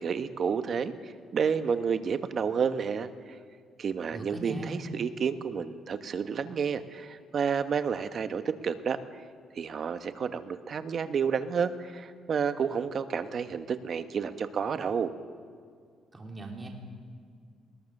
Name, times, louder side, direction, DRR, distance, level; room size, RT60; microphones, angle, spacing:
voice 1, 0.0-3.1 3.8-9.0 9.5-15.1, right 6 dB, 55° right, 10 dB, 1.2 m, -30 dB
voice 2, 4.1-4.9 16.1-16.7, right 2 dB, 20° right, 1 dB, 3.5 m, -39 dB
20.5 x 19.5 x 6.6 m, 2.1 s
cardioid pair, 90°, 0 cm